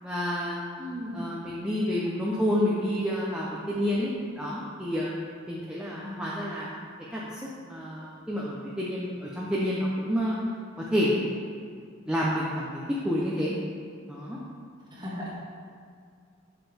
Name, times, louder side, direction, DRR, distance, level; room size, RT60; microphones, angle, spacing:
voice 1, 0.0-0.6 1.1-4.1 4.4-5.1 5.5-6.7 7.1-7.4 7.7-10.4 10.8-11.4 12.1-13.5 14.1-14.4, equal, 5° right, -7 dB, 0.7 m, -29 dB
voice 2, 0.8-1.2 5.9-6.2 14.9-15.3, left 1 dB, 20° right, -6 dB, 1.7 m, -37 dB
7.9 x 6.7 x 3.4 m, 2.2 s
head